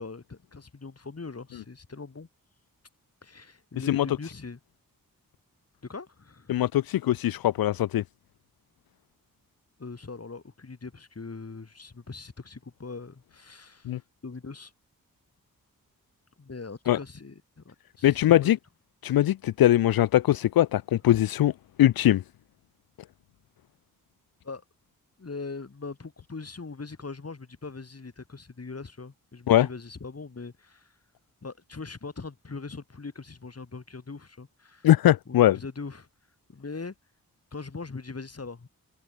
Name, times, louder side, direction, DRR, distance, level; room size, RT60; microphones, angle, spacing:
voice 1, 0.0-2.3 3.2-4.6 5.8-6.5 9.8-13.9 14.2-14.7 16.4-18.5 24.4-24.6 25.2-30.9 31.4-34.9 35.3-36.1 36.5-36.9 37.5-38.7, left 4 dB, 45° left, 3.6 m, -41 dB
voice 2, 6.5-8.0 13.9-14.0 16.9-17.0 18.0-18.6 19.0-21.5 21.8-22.2 29.5-29.7 34.8-35.6, left 13 dB, 80° left, 0.5 m, -21 dB
cardioid pair, 50°, 35 cm